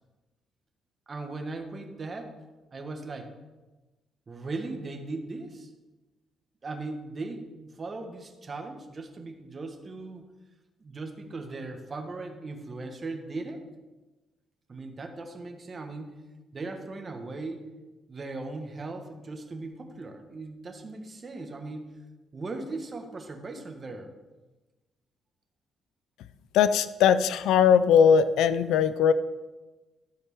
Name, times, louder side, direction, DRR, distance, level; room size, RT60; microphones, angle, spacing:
voice 1, 1.1-2.4 2.7-3.3 4.3-5.7 6.6-10.2 10.8-13.6 14.7-16.1 16.5-17.7 18.1-21.9 22.3-24.1, right 3 dB, 35° right, 4 dB, 1.5 m, -38 dB
voice 2, 26.5-29.1, left 7 dB, 90° left, 13 dB, 0.4 m, -20 dB
13.0 x 4.5 x 7.1 m, 1.2 s
cardioid pair, 90°, 0 cm